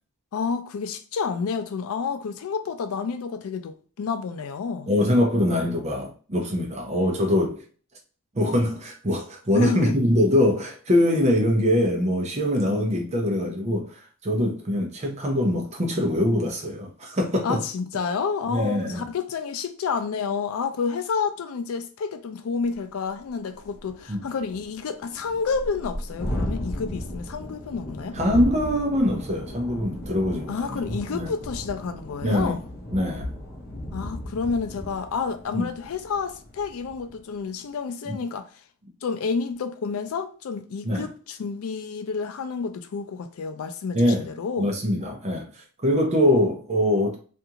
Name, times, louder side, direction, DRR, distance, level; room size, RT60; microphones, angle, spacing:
voice 1, 0.3-4.9 9.5-10.0 17.4-28.2 30.5-32.6 33.9-38.5 39.0-44.7, left 5 dB, 75° left, 0.4 m, -29 dB
voice 2, 4.9-7.6 8.3-17.6 18.5-19.0 24.1-24.2 28.1-31.3 32.2-32.6 32.9-33.3 35.5-35.7 38.1-38.2 40.8-41.1 43.9-44.3 44.6-45.5 45.8-47.2, left 1 dB, 30° right, 0.6 m, -23 dB
Thunderstorm, 22.7-22.8 23.2-23.3 23.6-37.2, left 1 dB, 45° left, 0.7 m, -35 dB
2.5 x 2.3 x 2.8 m
head